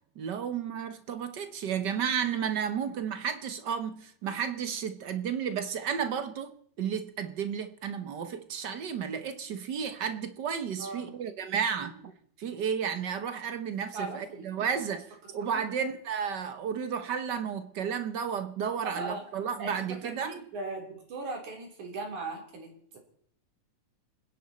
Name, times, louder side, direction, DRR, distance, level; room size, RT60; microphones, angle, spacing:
voice 1, 0.2-12.1 12.4-20.4, right 7 dB, 70° right, 1.0 m, -32 dB
voice 2, 10.8-11.1 11.8-12.0 13.9-14.5 15.5-15.6 18.8-19.3 19.6-23.0, right 3 dB, 85° right, 4.9 m, -39 dB
29.0 x 10.5 x 4.2 m
omnidirectional pair, 3.3 m